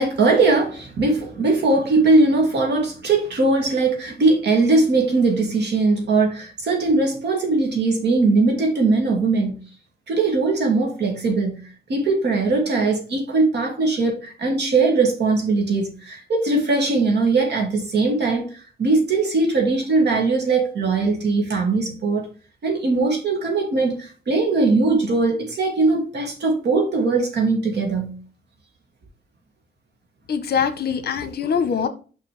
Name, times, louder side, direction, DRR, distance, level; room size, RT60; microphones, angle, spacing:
voice 1, 0.0-9.6 10.1-18.5 18.8-22.3 22.6-28.1, right 3 dB, 65° right, 2.7 m, -20 dB
voice 2, 30.3-31.9, left 7 dB, 60° left, 1.0 m, -23 dB
6.1 x 5.8 x 3.4 m
cardioid pair, 115°, 19 cm